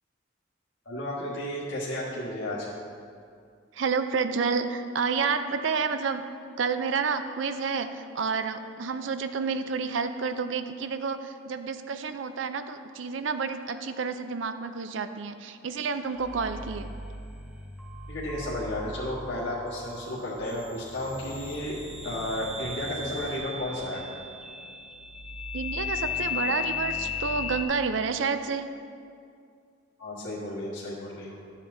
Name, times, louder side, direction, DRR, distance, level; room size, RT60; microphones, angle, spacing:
voice 1, 0.8-2.7 18.1-21.8 22.0-24.0 30.0-31.4, left 1 dB, 65° left, -8 dB, 1.5 m, -33 dB
voice 2, 3.7-6.2 6.6-16.9 25.5-28.7, right 5 dB, 75° right, 9 dB, 0.5 m, -29 dB
sound 1, 16.0-27.6, left 5 dB, 5° right, 0.7 m, -36 dB
12.5 x 7.3 x 2.7 m, 2.3 s
head